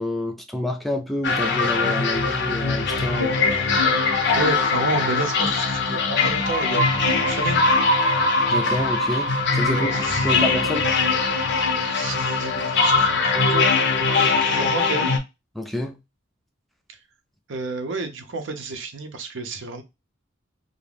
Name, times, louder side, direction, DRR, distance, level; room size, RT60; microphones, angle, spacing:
voice 1, 0.0-3.4 8.5-10.9 15.6-16.0, left 1 dB, ahead, 0.3 m, -28 dB
sound 1, 1.2-15.2, left 3 dB, 60° left, 0.5 m, -21 dB
voice 2, 4.3-6.8 7.2-7.6 9.7-10.3 11.8-13.9 14.2-15.1 17.5-19.8, right 3 dB, 70° right, 0.6 m, -31 dB
2.4 x 2.0 x 3.3 m
head